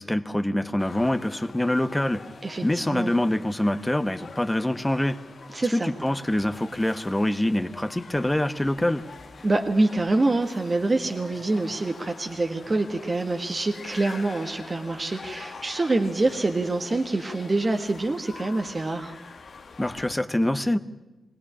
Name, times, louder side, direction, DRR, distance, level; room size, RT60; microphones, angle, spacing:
voice 1, 0.0-2.2 2.6-5.2 5.7-9.0 19.8-20.8, left 1 dB, 10° left, 11 dB, 1.1 m, -25 dB
sound 1, 0.8-20.1, left 4 dB, 60° left, 1.6 m, -45 dB
voice 2, 5.5-5.9 9.4-19.1, right 2 dB, 30° right, 4 dB, 1.6 m, -25 dB
21.5 x 17.0 x 10.0 m, 1.1 s
cardioid pair, 70°, 0 cm